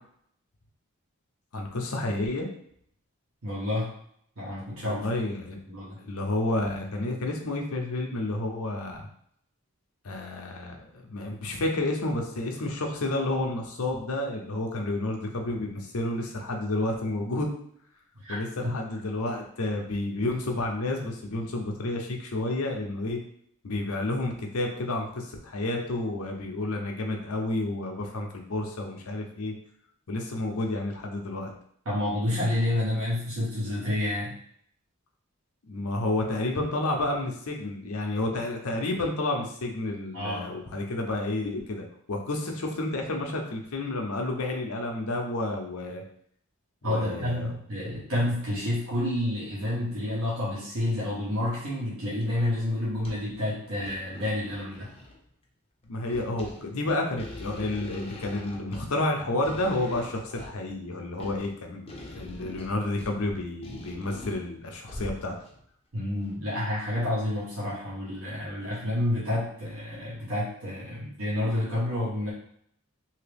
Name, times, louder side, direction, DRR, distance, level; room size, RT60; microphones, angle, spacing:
voice 1, 1.5-2.5 4.8-5.6 6.0-9.1 10.0-17.5 18.3-23.2 23.6-29.5 30.1-31.5 35.6-46.0 46.8-47.5 55.8-65.3, left 2 dB, 80° left, 2 dB, 0.7 m, -30 dB
voice 2, 3.4-3.9 4.4-5.1 5.7-6.0 18.2-18.4 18.6-18.7 31.8-34.4 40.1-40.5 46.8-54.9 65.9-72.3, left 1 dB, 75° right, -7 dB, 1.1 m, -29 dB
sound 1, 48.4-48.5 49.1-49.2 50.3-50.6 51.3-51.8 52.2-52.3 52.6-53.4 53.7-55.3 55.8-65.6 66.2-66.3, left 1 dB, 25° left, 0.5 m, -43 dB
2.9 x 2.8 x 3.4 m, 0.68 s
head